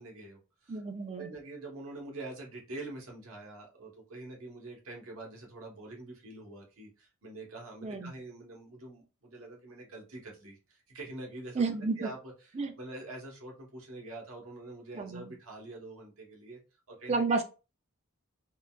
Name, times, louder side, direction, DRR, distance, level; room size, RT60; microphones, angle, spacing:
voice 1, 0.0-0.8 1.1-11.6 12.0-16.6 16.9-17.2, right 2 dB, 80° right, 0 dB, 1.1 m, -45 dB
voice 2, 0.7-1.3 7.8-8.1 11.5-12.1 12.6-12.7 14.9-15.3 17.1-17.4, right 4 dB, 30° right, 7 dB, 0.4 m, -31 dB
3.6 x 2.3 x 2.3 m, 0.32 s
head